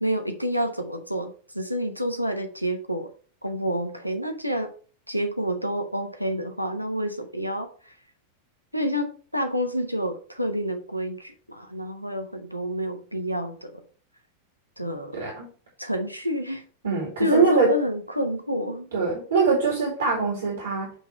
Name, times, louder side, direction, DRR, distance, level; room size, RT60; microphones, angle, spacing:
voice 1, 0.0-3.1 3.4-4.7 5.1-8.0 8.7-13.8 14.8-15.3 15.8-16.6 17.2-18.9, equal, 90° left, 7 dB, 0.9 m, -28 dB
voice 2, 15.1-15.5 16.8-17.7 18.9-20.9, right 5 dB, 65° right, -1 dB, 2.1 m, -23 dB
7.3 x 3.5 x 4.6 m, 0.41 s
figure-of-eight pair, 90°, 0 cm